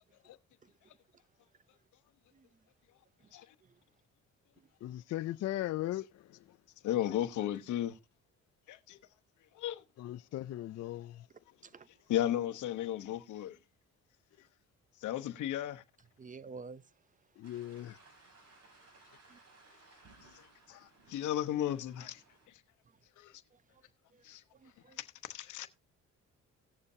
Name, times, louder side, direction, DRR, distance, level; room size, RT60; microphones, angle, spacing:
voice 1, 4.8-6.4 10.0-11.3 17.4-18.0 20.7-20.8, left 14 dB, 55° left, 0.4 m, -38 dB
voice 2, 6.8-8.0 8.7-9.0 9.5-9.8 12.1-13.6 15.0-15.8 20.7-22.2 23.2-23.3 24.2-24.4 25.0-25.7, left 12 dB, 75° left, 1.0 m, -34 dB
voice 3, 16.2-16.8 19.3-19.4 22.9-23.0 23.5-23.8 24.1-24.2 24.5-25.0, right 4 dB, 25° right, 0.6 m, -51 dB
sound 1, 17.4-22.5, right 2 dB, 55° right, 5.5 m, -61 dB
17.5 x 7.0 x 2.7 m
cardioid pair, 90°, 30 cm